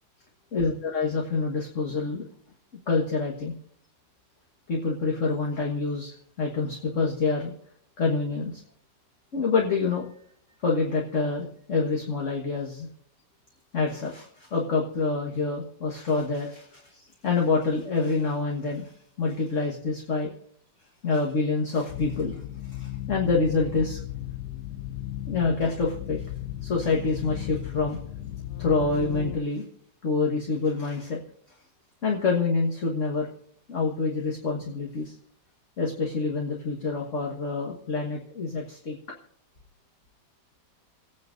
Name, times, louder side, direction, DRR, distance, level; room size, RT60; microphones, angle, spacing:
voice 1, 0.5-2.3 2.9-3.5 4.7-7.5 8.0-8.6 9.3-10.1 10.6-12.9 13.7-20.3 21.0-22.4 22.7-24.0 25.3-26.2 26.6-28.0 28.6-29.6 30.0-31.2 32.0-33.3 33.7-35.2 35.8-39.0, left 4 dB, 45° left, -1 dB, 1.7 m, -27 dB
sound 1, 21.9-29.4, left 13 dB, 70° left, 1.1 m, -36 dB
28.0 x 9.4 x 2.6 m, 0.67 s
omnidirectional pair, 1.9 m